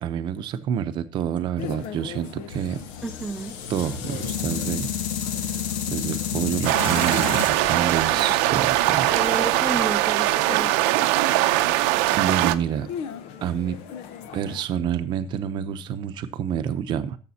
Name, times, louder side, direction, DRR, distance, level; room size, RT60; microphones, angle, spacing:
voice 1, 0.0-2.8 3.7-4.9 5.9-9.1 12.2-12.9 13.4-13.8 14.3-17.2, right 9 dB, 45° right, 0.8 m, -28 dB
sound 1, 1.6-14.6, left 7 dB, 65° left, 0.9 m, -40 dB
sound 2, 2.5-10.6, left 8 dB, 90° left, 1.1 m, -32 dB
voice 2, 3.0-3.6 9.1-10.7, right 2 dB, 10° right, 0.4 m, -31 dB
sound 3, 6.6-12.6, right 17 dB, 80° right, 0.6 m, -21 dB
13.5 x 7.4 x 2.8 m
cardioid pair, 150°, 11 cm